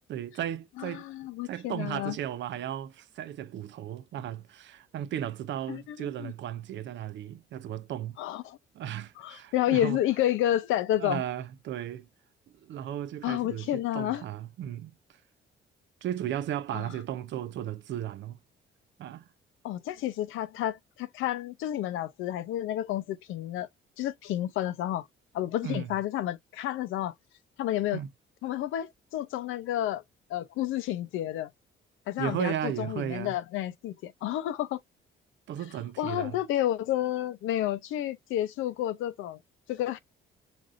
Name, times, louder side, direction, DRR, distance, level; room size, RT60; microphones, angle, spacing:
voice 1, 0.1-1.0 1.4-8.2 8.7-10.0 11.0-12.1 12.5-14.9 16.0-18.4 19.0-19.2 25.6-25.9 27.9-28.1 32.2-33.3 35.5-36.4, right 11 dB, 70° right, 0.5 m, -35 dB
voice 2, 0.8-2.2 5.7-6.3 8.2-8.6 9.2-11.2 13.2-14.2 16.7-16.8 19.6-23.7 24.0-25.1 25.3-27.1 27.6-28.0 28.4-30.0 30.3-31.5 32.1-34.8 36.0-39.4 39.7-40.0, left 13 dB, 85° left, 0.6 m, -30 dB
5.1 x 2.5 x 2.5 m
cardioid pair, 90°, 20 cm